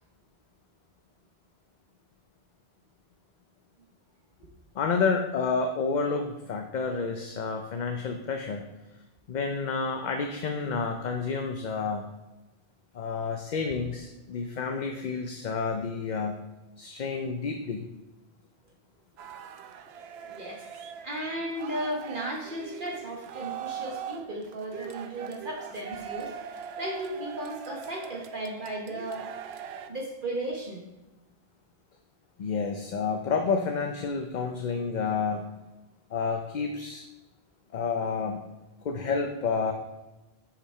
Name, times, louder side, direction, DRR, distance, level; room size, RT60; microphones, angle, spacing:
voice 1, 4.7-8.7 9.3-12.0 12.9-16.4 16.8-17.9 32.4-35.5 36.1-37.0 37.7-38.4 38.8-39.7, left 5 dB, 50° left, 4 dB, 0.6 m, -29 dB
sound 1, 19.2-29.9, right 8 dB, 75° right, 0.8 m, -41 dB
voice 2, 20.3-20.6 21.0-26.3 26.8-29.3 29.8-30.8, right 1 dB, 50° right, -1 dB, 1.2 m, -35 dB
6.7 x 5.7 x 4.3 m, 1.1 s
omnidirectional pair, 1.1 m